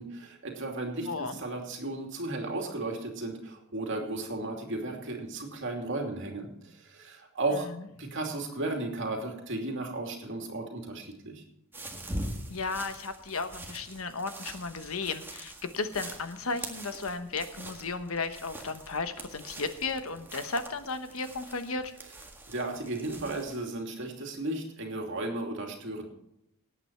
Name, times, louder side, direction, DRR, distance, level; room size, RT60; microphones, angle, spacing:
voice 1, 0.0-7.7 8.0-11.4 22.5-26.0, right 2 dB, 60° right, 2 dB, 2.7 m, -35 dB
voice 2, 1.0-1.4 7.6-7.7 12.5-21.9, left 4 dB, 75° left, 9 dB, 1.2 m, -34 dB
sound 1, 11.7-23.6, right 1 dB, 10° right, 1.8 m, -43 dB
18.0 x 8.8 x 4.6 m, 0.79 s
head